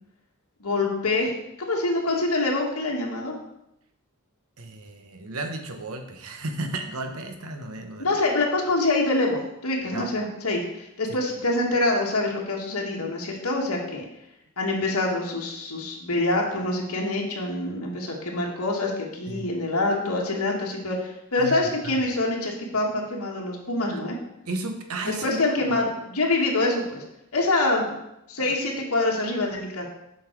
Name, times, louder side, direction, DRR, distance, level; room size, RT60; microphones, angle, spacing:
voice 1, 0.6-3.4 8.0-14.1 14.6-24.2 25.2-27.0 27.3-28.0 28.3-29.9, left 2 dB, 75° left, -1 dB, 1.6 m, -25 dB
voice 2, 4.6-8.1 9.9-10.1 11.1-11.2 19.3-19.5 21.4-21.6 21.8-21.9 23.9-24.0 24.5-25.4 25.7-25.8, right 2 dB, 75° right, 5 dB, 1.0 m, -33 dB
7.4 x 5.4 x 4.6 m, 0.84 s
head